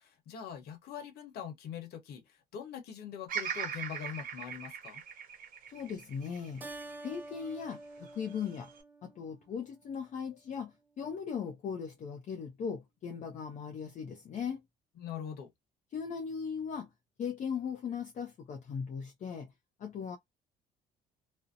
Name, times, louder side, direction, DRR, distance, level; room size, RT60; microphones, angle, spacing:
voice 1, 0.0-5.0 15.0-15.5, left 8 dB, 70° left, 0.9 m, -43 dB
Bird vocalization bird call bird song, 3.3-7.5 8.1-8.8, right 8 dB, 55° right, 0.8 m, -40 dB
voice 2, 5.7-6.7 7.0-8.7 9.0-14.6 15.9-16.9 17.2-19.5 19.8-20.2, left 6 dB, 45° left, 0.5 m, -38 dB
Keyboard (musical), 6.6-9.5, right 2 dB, 10° right, 0.4 m, -48 dB
2.6 x 2.0 x 2.5 m
cardioid pair, 110°, 17 cm